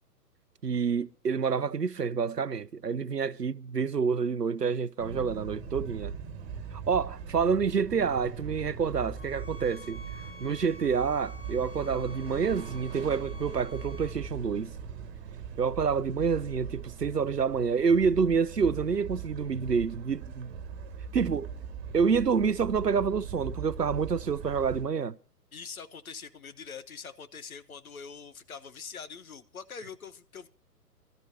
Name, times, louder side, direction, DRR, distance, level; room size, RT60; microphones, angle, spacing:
voice 1, 0.6-6.2 6.7-10.0 10.4-14.7 15.6-20.5 21.1-21.5 21.9-25.1, right 6 dB, 85° right, 0.7 m, -28 dB
sound 1, 5.0-24.8, right 7 dB, 20° right, 2.2 m, -40 dB
sound 2, 9.2-14.2, equal, 20° left, 3.3 m, -49 dB
voice 2, 25.5-30.5, left 6 dB, 60° left, 1.2 m, -44 dB
26.5 x 13.0 x 2.7 m
figure-of-eight pair, 125°, 47 cm